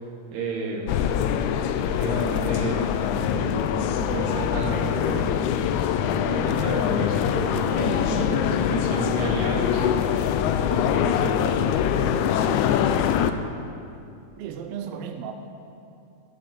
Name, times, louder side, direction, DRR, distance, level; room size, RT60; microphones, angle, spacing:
voice 1, 0.3-0.9 2.0-2.8 3.2-5.5 6.1-9.8 10.5-12.4, right 3 dB, 60° right, -2 dB, 2.7 m, -32 dB
sound 1, 0.9-13.3, left 9 dB, 80° left, 2.0 m, -23 dB
voice 2, 14.4-15.3, right 8 dB, 80° right, 5 dB, 1.4 m, -34 dB
13.0 x 11.5 x 4.4 m, 2.6 s
omnidirectional pair, 3.5 m